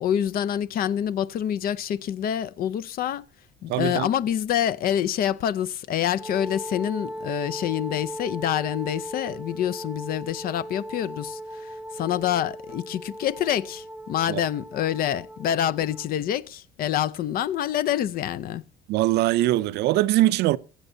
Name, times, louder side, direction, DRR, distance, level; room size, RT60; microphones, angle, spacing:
voice 1, 0.0-3.2 3.6-18.6, left 10 dB, 60° left, 0.6 m, -27 dB
voice 2, 3.7-4.1 14.3-14.4 18.9-20.6, right 16 dB, 80° right, 0.5 m, -22 dB
Wind instrument woodwind instrument, 6.1-16.1, equal, 5° right, 0.9 m, -38 dB
21.5 x 8.0 x 2.7 m
cardioid pair, 110°, 17 cm